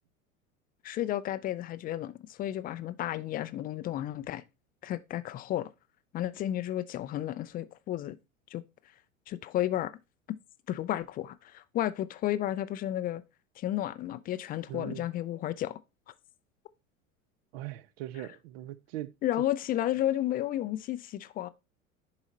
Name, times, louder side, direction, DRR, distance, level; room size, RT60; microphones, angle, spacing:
voice 1, 0.8-4.4 4.8-5.7 6.1-8.2 8.5-8.6 9.3-9.9 10.7-13.2 13.6-15.8 19.2-21.5, left 13 dB, 20° left, 0.5 m, -32 dB
voice 2, 14.7-15.1 17.5-19.1, right 14 dB, 50° right, 0.8 m, -40 dB
10.5 x 4.9 x 4.0 m
figure-of-eight pair, 80°, 41 cm